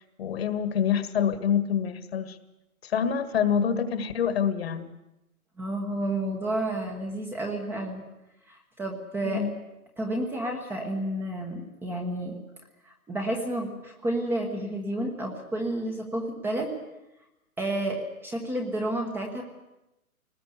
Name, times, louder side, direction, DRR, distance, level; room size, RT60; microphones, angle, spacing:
voice 1, 0.0-2.4 2.8-4.9 9.2-9.5, left 8 dB, 45° left, 11 dB, 1.9 m, -26 dB
voice 2, 5.6-8.0 8.5-9.4 10.0-12.4 12.8-16.7 17.6-19.4, right 1 dB, 5° right, 2 dB, 1.2 m, -31 dB
23.0 x 19.5 x 8.2 m, 0.93 s
hypercardioid pair, 150°, 44 cm